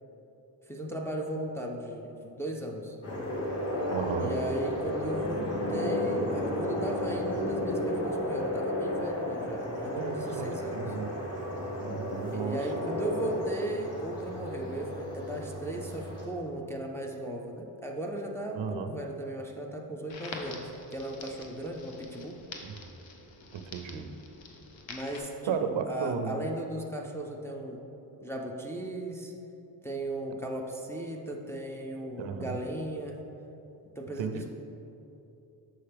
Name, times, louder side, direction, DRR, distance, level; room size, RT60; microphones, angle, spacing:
voice 1, 0.7-3.0 4.2-11.0 12.3-22.4 24.9-27.8 28.2-29.3 29.8-33.2 34.0-34.5, right 1 dB, 5° left, -1 dB, 0.4 m, -36 dB
sound 1, 3.0-16.2, left 1 dB, 35° left, 1.4 m, -33 dB
voice 2, 3.9-4.3 9.8-11.2 11.8-12.6 18.6-19.0 22.6-22.7 23.5-24.1 25.5-26.4 32.2-32.6 34.2-34.5, right 6 dB, 80° right, 8 dB, 0.6 m, -34 dB
Crackle, 20.1-25.2, left 3 dB, 80° left, 0.8 m, -46 dB
6.4 x 5.6 x 3.4 m, 3.0 s
wide cardioid pair, 120°, 45 cm